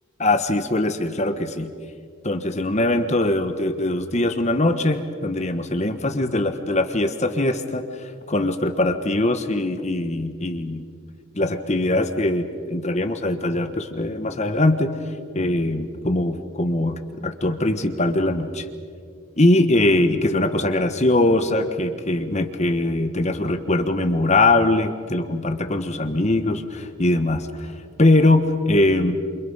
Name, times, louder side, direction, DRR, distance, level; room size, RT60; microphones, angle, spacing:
voice 1, 0.2-1.7 2.2-10.9 11.3-14.9 15.3-18.7 19.4-27.7 28.0-29.1, left 2 dB, 30° left, 8 dB, 1.3 m, -21 dB
28.5 x 28.0 x 5.6 m, 2.2 s
head